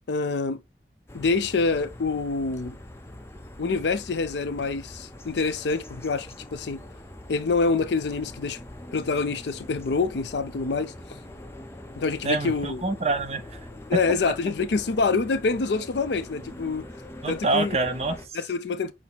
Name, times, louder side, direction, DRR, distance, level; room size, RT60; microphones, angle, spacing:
voice 1, 0.1-0.6 1.1-2.8 3.6-6.8 7.3-8.6 8.9-10.9 12.0-12.8 13.9-16.9 17.3-17.8 18.3-18.9, left 4 dB, 75° left, 0.5 m, -26 dB
sound 1, 1.1-18.3, left 1 dB, 15° left, 0.5 m, -43 dB
voice 2, 12.2-13.6 13.9-14.0 17.2-18.4, right 3 dB, 35° right, 0.5 m, -26 dB
5.9 x 2.0 x 4.0 m
head